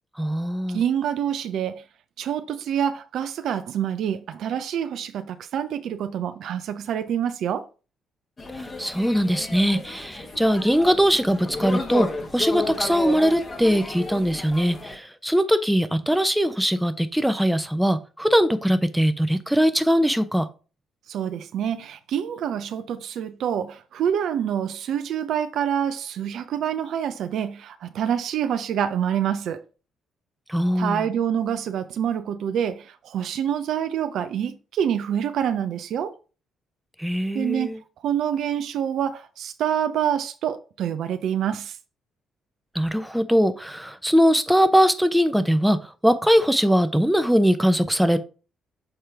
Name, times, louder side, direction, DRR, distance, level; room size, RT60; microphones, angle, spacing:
voice 1, 0.2-0.8 8.5-20.5 30.5-31.1 37.0-37.8 42.7-48.2, equal, 5° right, 0.8 m, -21 dB
voice 2, 0.7-1.8 2.2-7.6 21.1-29.7 30.8-36.2 37.3-37.7 38.0-41.8, right 9 dB, 65° right, 0.5 m, -26 dB
sound 1, 8.4-15.0, left 2 dB, 35° left, 1.5 m, -32 dB
6.7 x 4.3 x 3.4 m
hypercardioid pair, 45°, 0 cm